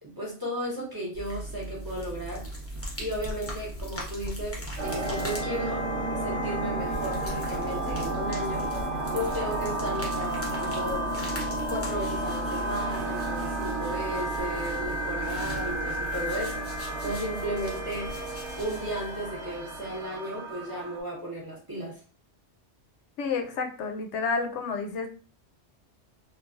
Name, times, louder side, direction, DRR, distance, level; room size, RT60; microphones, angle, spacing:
voice 1, 0.0-2.4 3.0-5.8 6.2-8.7 9.1-11.1 11.7-16.7 17.0-18.1 18.6-22.0, equal, 25° right, -4 dB, 0.7 m, -34 dB
sound 1, 1.1-20.0, right 1 dB, 15° left, 0.6 m, -39 dB
sound 2, 4.8-21.0, right 1 dB, 85° right, 1.1 m, -32 dB
voice 2, 23.2-25.1, left 4 dB, 85° left, 4 dB, 0.9 m, -30 dB
3.1 x 2.3 x 2.4 m, 0.37 s
omnidirectional pair, 1.2 m